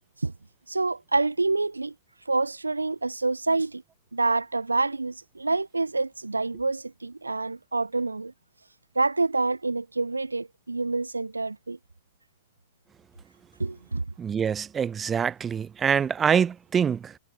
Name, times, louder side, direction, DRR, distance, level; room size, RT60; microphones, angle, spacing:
voice 1, 0.7-1.9 2.3-3.8 4.1-8.3 9.0-11.8 13.6-14.1, right 3 dB, 90° right, 2.5 m, -27 dB
voice 2, 14.2-17.2, right 7 dB, 20° right, 0.7 m, -25 dB
figure-of-eight pair, 100°, 0 cm